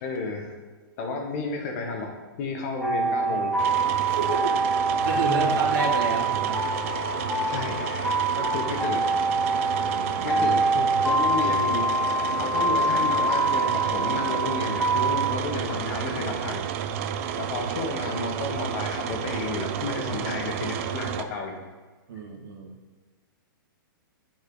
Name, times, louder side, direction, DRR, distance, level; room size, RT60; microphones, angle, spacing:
voice 1, 0.0-0.5 1.0-3.6 7.5-9.1 9.4-9.9 10.2-11.9 12.4-16.7 17.4-21.6, left 3 dB, 40° left, 3 dB, 1.3 m, -32 dB
sound 1, 2.8-15.3, right 2 dB, ahead, 1.1 m, -25 dB
sound 2, 3.6-21.2, right 9 dB, 40° right, 0.5 m, -32 dB
voice 2, 4.1-6.6 9.8-10.5 22.1-22.7, right 4 dB, 65° right, -3 dB, 2.3 m, -31 dB
8.1 x 6.3 x 4.0 m, 1.3 s
hypercardioid pair, 155°, 12 cm